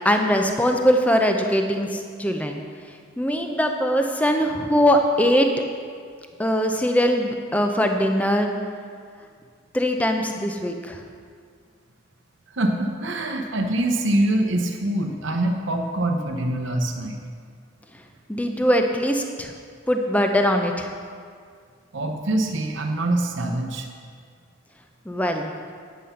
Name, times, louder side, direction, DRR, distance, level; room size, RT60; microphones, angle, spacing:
voice 1, 0.0-2.6 3.2-5.5 6.4-8.5 9.7-11.0 18.3-19.5 19.9-20.9 25.1-25.5, equal, 5° left, 4 dB, 0.6 m, -21 dB
voice 2, 12.5-17.2 21.9-23.9, right 1 dB, 65° right, 3 dB, 0.8 m, -24 dB
9.3 x 8.0 x 5.7 m, 2.1 s
head